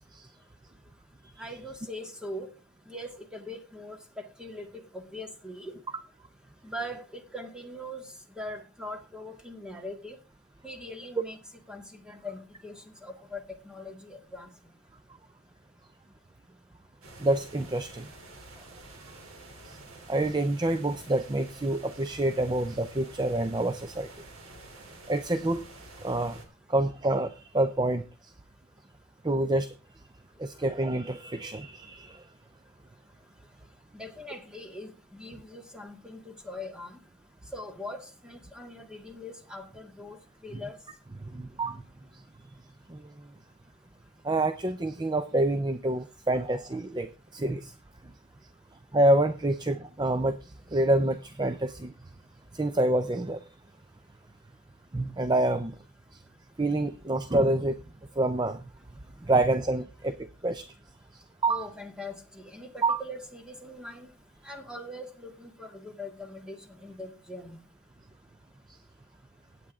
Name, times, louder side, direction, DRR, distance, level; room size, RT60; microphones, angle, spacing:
voice 1, 1.4-2.5 2.9-5.8 6.6-8.0 8.3-10.2 10.6-11.4 11.7-14.5 33.9-37.0 37.5-40.8 61.5-64.1 64.4-67.6, left 1 dB, 5° right, 4 dB, 1.9 m, -41 dB
sound 1, 17.0-26.4, right 2 dB, 80° right, 3.4 m, -49 dB
voice 2, 17.2-18.1 19.7-19.8 20.1-24.1 25.1-25.6 26.0-26.4 26.7-28.0 29.2-29.7 30.4-32.2 41.3-41.8 42.9-43.1 44.2-47.7 48.9-51.9 52.5-53.4 54.9-55.8 56.6-57.8 58.2-58.6 59.2-60.7 61.4-61.7 62.8-63.0, right 1 dB, 20° right, 11 dB, 0.5 m, -27 dB
16.0 x 9.1 x 3.6 m, 0.33 s
head